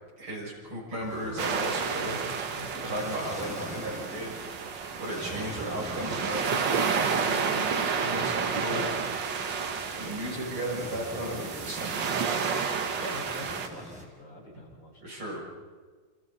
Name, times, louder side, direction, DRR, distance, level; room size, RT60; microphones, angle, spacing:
voice 1, 0.2-2.2 2.7-4.4 5.0-8.8 9.9-12.0 14.5-14.6 15.0-15.4, right 1 dB, 80° right, -4 dB, 8.2 m, -35 dB
sound 1, 1.0-14.0, equal, 5° right, 3.7 m, -45 dB
sound 2, 1.4-13.7, right 6 dB, 60° right, 2.0 m, -31 dB
voice 2, 12.9-14.9, left 1 dB, 60° left, -2 dB, 6.3 m, -43 dB
28.5 x 28.5 x 4.3 m, 1.4 s
omnidirectional pair, 2.3 m